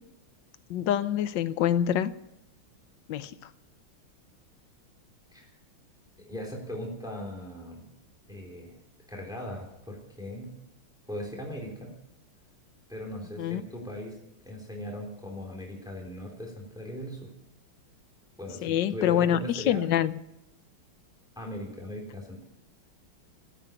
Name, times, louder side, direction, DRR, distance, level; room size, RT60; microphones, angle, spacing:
voice 1, 0.7-2.1 3.1-3.3 13.4-13.6 18.6-20.1, left 10 dB, 70° left, 14 dB, 1.3 m, -26 dB
voice 2, 6.2-7.8 8.3-8.7 9.1-10.5 11.1-11.9 12.9-14.1 14.4-17.3 18.4-19.8 21.4-22.4, left 1 dB, ahead, 0 dB, 3.5 m, -39 dB
15.5 x 9.0 x 8.9 m, 0.86 s
omnidirectional pair, 2.3 m